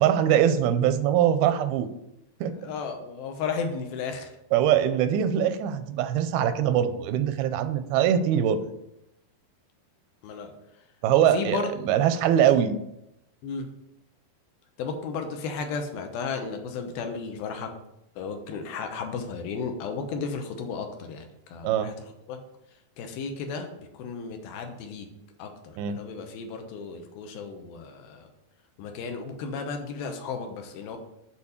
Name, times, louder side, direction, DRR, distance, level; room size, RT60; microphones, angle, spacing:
voice 1, 0.0-1.9 2.4-2.5 4.5-8.6 11.0-12.8 21.6-21.9 25.8-26.0, right 10 dB, 90° right, 11 dB, 2.5 m, -22 dB
voice 2, 2.5-4.3 8.6-8.7 10.2-10.5 11.3-11.7 13.4-13.7 14.8-17.7 18.2-21.9 22.3-22.4 23.0-25.1 25.4-28.3 28.8-31.0, left 5 dB, 80° left, 5 dB, 2.8 m, -34 dB
8.4 x 4.4 x 7.1 m, 0.83 s
omnidirectional pair, 4.4 m